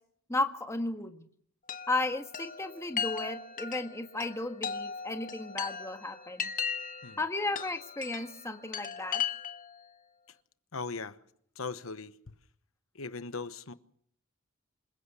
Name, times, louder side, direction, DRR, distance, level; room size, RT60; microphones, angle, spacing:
voice 1, 0.3-1.2 1.9-6.5 7.2-9.2, left 2 dB, 15° left, 6 dB, 1.5 m, -34 dB
Chime, 1.7-9.8, left 7 dB, 40° left, 1.3 m, -38 dB
voice 2, 10.7-11.2 11.5-12.3 12.9-13.7, left 4 dB, 75° left, 12 dB, 1.1 m, -39 dB
27.0 x 16.0 x 6.9 m, 0.65 s
head